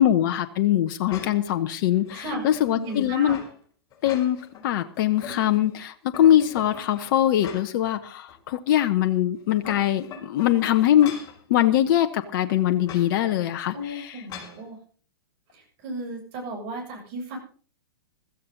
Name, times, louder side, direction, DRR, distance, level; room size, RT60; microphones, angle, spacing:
voice 1, 0.0-3.4 4.0-4.4 4.6-11.1 11.5-14.2, left 12 dB, 50° left, 9 dB, 1.1 m, -22 dB
sound 1, 1.1-1.6 2.0-3.5 3.9-4.6 5.0-5.7 6.1-7.9 8.3-8.4 9.4-11.4 12.8-13.1 14.3-14.6, left 5 dB, 30° left, 5.1 m, -41 dB
voice 2, 2.1-2.4 2.7-3.3 13.7-14.8 15.5-17.4, right 1 dB, 45° right, 1 dB, 7.6 m, -34 dB
16.0 x 14.0 x 4.0 m, 0.44 s
hypercardioid pair, 115°, 13 cm